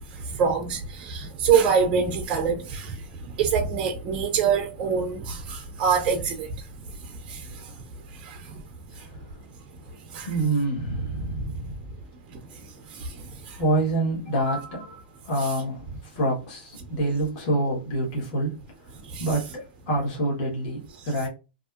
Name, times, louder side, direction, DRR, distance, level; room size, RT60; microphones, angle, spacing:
voice 1, 0.3-2.9 3.4-6.5 7.3-7.6 8.2-8.4 10.1-10.3 13.0-13.1 13.5-13.6 15.4-15.5 19.1-19.3, right 6 dB, 20° right, 0.4 m, -25 dB
voice 2, 8.9-9.4 10.2-11.9 13.6-21.3, right 1 dB, 35° left, 1.1 m, -27 dB
2.5 x 2.4 x 2.3 m
hypercardioid pair, 165°, 6 cm